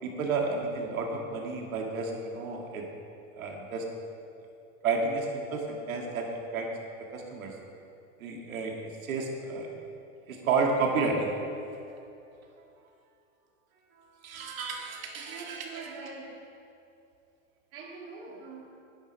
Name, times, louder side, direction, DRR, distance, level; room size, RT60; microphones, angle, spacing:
voice 1, 0.0-2.9 3.3-3.8 4.8-6.7 7.1-7.5 8.2-8.7 9.0-9.7 10.3-11.3 14.2-15.9, right 4 dB, 80° right, 0 dB, 2.3 m, -31 dB
voice 2, 15.1-16.5 17.7-18.8, right 4 dB, 50° right, -3 dB, 2.5 m, -44 dB
10.5 x 10.0 x 5.5 m, 2.5 s
supercardioid pair, 145°, 41 cm